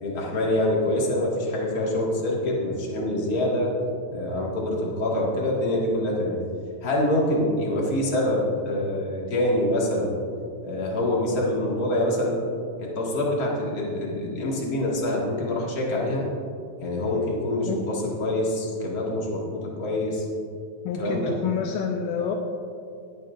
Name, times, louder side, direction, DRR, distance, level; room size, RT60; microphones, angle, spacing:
voice 1, 0.0-3.7 4.1-6.4 6.8-10.1 10.6-12.4 12.8-16.2 16.8-20.3 20.9-21.4, left 1 dB, 35° left, -4 dB, 1.8 m, -25 dB
voice 2, 20.8-22.3, left 7 dB, 80° left, 2 dB, 2.3 m, -28 dB
19.0 x 9.0 x 2.6 m, 2.4 s
omnidirectional pair, 3.9 m